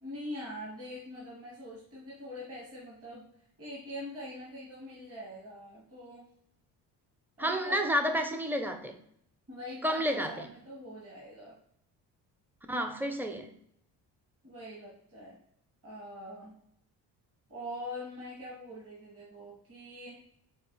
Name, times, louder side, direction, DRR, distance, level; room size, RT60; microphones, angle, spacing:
voice 1, 0.0-3.3 3.6-6.3 7.4-8.3 9.5-11.6 14.4-15.4 15.8-16.6 17.5-20.2, left 1 dB, 30° right, -5 dB, 1.5 m, -43 dB
voice 2, 7.4-9.0 9.8-10.5 12.7-13.5, equal, 5° right, 6 dB, 0.5 m, -30 dB
4.6 x 2.5 x 3.8 m, 0.70 s
cardioid pair, 80°, 43 cm